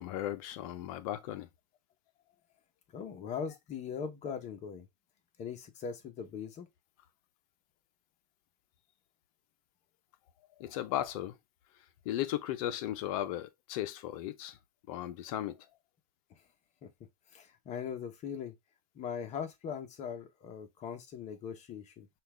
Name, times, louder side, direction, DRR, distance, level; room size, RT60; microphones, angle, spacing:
voice 1, 0.0-1.5 10.6-11.4 12.0-14.6 14.9-15.7, left 13 dB, 55° left, 0.7 m, -36 dB
voice 2, 2.9-4.9 5.4-6.7 16.3-16.4 16.8-16.9 17.3-18.5 18.9-22.1, left 7 dB, 30° left, 1.0 m, -40 dB
5.6 x 2.5 x 3.3 m
hypercardioid pair, 120°, 21 cm